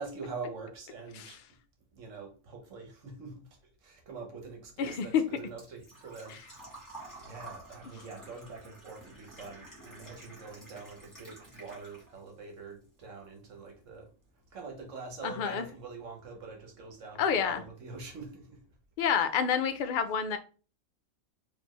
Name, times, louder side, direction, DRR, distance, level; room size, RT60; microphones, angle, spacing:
voice 1, 0.0-1.4 1.9-6.8 7.2-14.1 14.5-18.6, right 4 dB, 70° right, 1.3 m, -45 dB
Engine / Trickle dribble / Fill (with liquid), 4.4-12.3 12.7-13.7 14.0-14.1 16.0-16.1 16.2-16.6 16.9-17.0 17.3-17.4, right 2 dB, 15° left, 1.9 m, -51 dB
voice 2, 4.8-5.2 15.2-15.7 17.2-17.6 19.0-20.4, left 7 dB, 70° left, 0.4 m, -28 dB
4.3 x 2.7 x 2.9 m
omnidirectional pair, 1.4 m